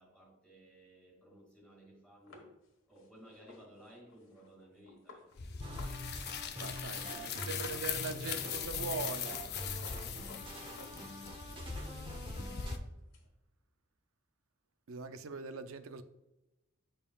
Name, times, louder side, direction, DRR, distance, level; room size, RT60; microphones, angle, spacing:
voice 1, 0.0-2.6 2.9-5.3 6.7-9.7, equal, 5° left, 2.2 m, -58 dB
sound 1, 2.3-6.0 6.2-6.3 6.6-8.0 8.4-8.6 8.8-11.5 11.8-13.3, left 3 dB, 75° left, 1.4 m, -57 dB
sound 2, 5.4-12.8, left 7 dB, 55° left, 0.6 m, -40 dB
sound 3, 5.6-12.8, equal, 25° right, 0.9 m, -45 dB
voice 2, 6.6-9.4 14.9-16.0, right 5 dB, 85° right, 0.5 m, -41 dB
8.7 x 5.4 x 2.3 m
head